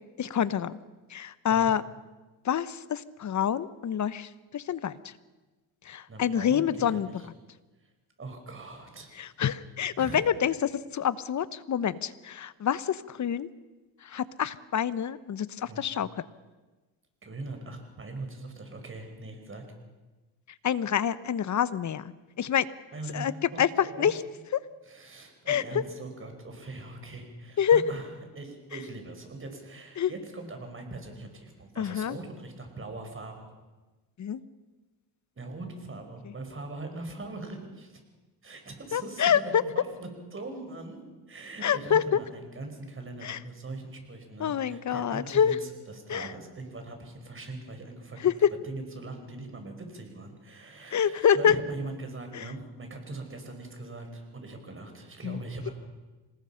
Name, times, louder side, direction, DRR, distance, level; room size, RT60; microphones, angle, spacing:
voice 1, 0.2-0.8 1.1-1.8 2.4-5.1 5.8-7.3 9.1-13.5 14.0-16.2 20.6-22.7 23.1-23.3 23.6-24.2 24.5-24.6 25.5-25.6 27.6-27.8 30.0-30.1 31.8-32.2 34.2-34.4 36.2-36.3 38.9-39.6 41.6-42.2 43.2-43.4 44.4-45.6 46.1-46.3 48.2-48.3 50.9-51.6 52.3-52.5 55.2-55.4, left 8 dB, 45° left, 16 dB, 1.0 m, -27 dB
voice 2, 6.1-6.6 6.9-7.3 8.2-9.1 10.0-10.2 15.6-15.9 17.2-19.6 22.9-24.1 24.9-28.1 28.4-33.5 35.4-38.0 38.4-41.0 41.3-48.3 48.6-55.7, right 2 dB, 30° right, 5 dB, 5.3 m, -41 dB
26.5 x 19.5 x 5.8 m, 1.2 s
cardioid pair, 90°, 42 cm